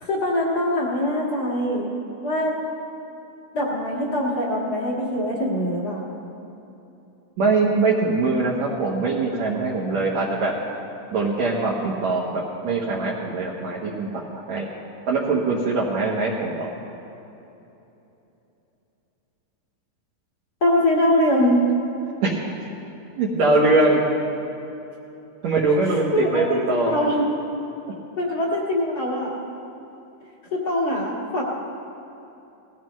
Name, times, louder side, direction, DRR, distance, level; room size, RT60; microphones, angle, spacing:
voice 1, 0.0-1.9 2.2-2.5 3.5-6.1 20.6-21.6 25.8-27.2 28.2-29.3 30.5-31.4, left 1 dB, 35° left, -4 dB, 1.7 m, -23 dB
voice 2, 7.4-10.5 11.1-14.7 15.1-16.7 22.2-22.4 23.2-24.0 25.4-27.0, right 3 dB, 65° right, -5 dB, 2.1 m, -22 dB
19.5 x 14.5 x 3.1 m, 3.0 s
omnidirectional pair, 3.9 m